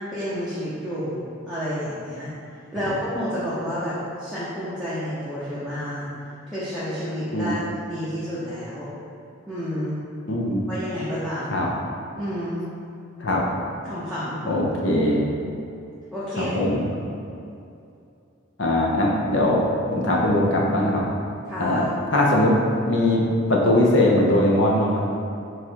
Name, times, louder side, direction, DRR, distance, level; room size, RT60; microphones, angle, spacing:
voice 1, 0.1-2.3 2.7-6.1 6.5-7.6 7.9-8.9 9.5-10.0 10.7-11.6 12.1-12.6 13.8-14.5 14.9-15.0 16.1-16.5 21.5-21.9, equal, ahead, -12 dB, 0.7 m, -30 dB
voice 2, 10.3-10.6 11.5-11.7 13.2-13.4 14.5-15.2 16.4-16.9 18.6-19.6 19.9-21.0 21.6-22.6 22.8-23.2 23.5-25.1, left 1 dB, 60° left, -3 dB, 0.7 m, -20 dB
3.7 x 3.1 x 4.5 m, 2.6 s
head